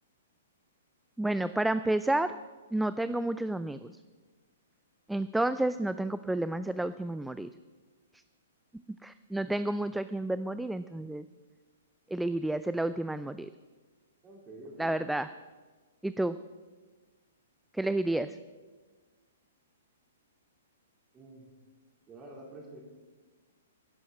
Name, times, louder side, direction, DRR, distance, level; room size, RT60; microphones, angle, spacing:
voice 1, 1.2-2.3 2.7-3.9 5.1-7.5 9.0-11.3 12.1-13.5 14.8-15.3 16.0-16.4 17.7-18.4, right 1 dB, 5° right, 13 dB, 0.3 m, -30 dB
voice 2, 14.2-15.1 21.1-21.5 22.1-22.8, right 2 dB, 20° right, -2 dB, 3.9 m, -48 dB
16.0 x 11.0 x 4.2 m, 1.4 s
figure-of-eight pair, 115°, 0 cm